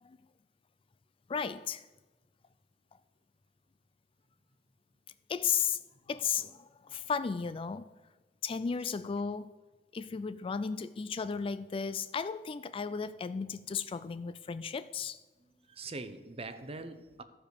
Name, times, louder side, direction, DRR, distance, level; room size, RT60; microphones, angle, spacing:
voice 1, 1.3-1.8 5.3-5.8 6.1-7.9 8.4-9.5 9.9-15.2, left 6 dB, 30° left, 0.3 m, -34 dB
voice 2, 15.4-17.2, right 3 dB, 35° right, 0.8 m, -43 dB
13.5 x 5.0 x 6.7 m
head